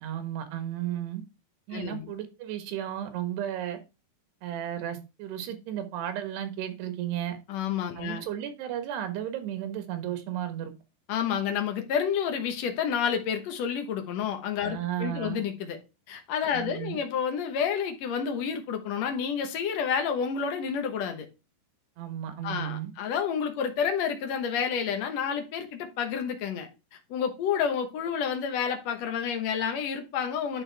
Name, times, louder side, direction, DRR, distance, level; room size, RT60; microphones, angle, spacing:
voice 1, 0.0-1.2 1.7-3.8 4.4-7.4 8.0-10.7 14.6-15.4 16.5-17.0 22.0-22.9, right 11 dB, 80° right, 3.3 m, -34 dB
voice 2, 1.7-2.1 7.5-8.2 11.1-15.8 16.1-21.3 22.4-26.7 27.1-30.6, left 7 dB, 75° left, 1.5 m, -29 dB
10.5 x 4.6 x 3.4 m
omnidirectional pair, 4.8 m